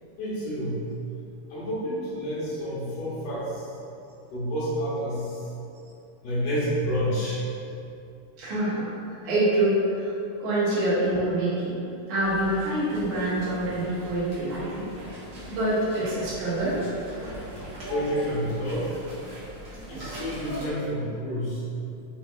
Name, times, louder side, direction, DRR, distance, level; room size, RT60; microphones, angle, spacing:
voice 1, 0.2-0.8 1.5-3.8 4.3-5.5 6.2-7.4 17.9-19.0 19.9-21.6, equal, 65° left, -9 dB, 1.7 m, -29 dB
voice 2, 8.4-10.1 10.4-11.8 12.1-14.9 15.5-16.8 17.8-18.0 19.9-20.0, right 1 dB, 65° right, -10 dB, 1.4 m, -26 dB
sound 1, 12.2-20.7, equal, 85° right, 1.0 m, -41 dB
5.1 x 3.3 x 2.4 m, 2.7 s
omnidirectional pair, 3.7 m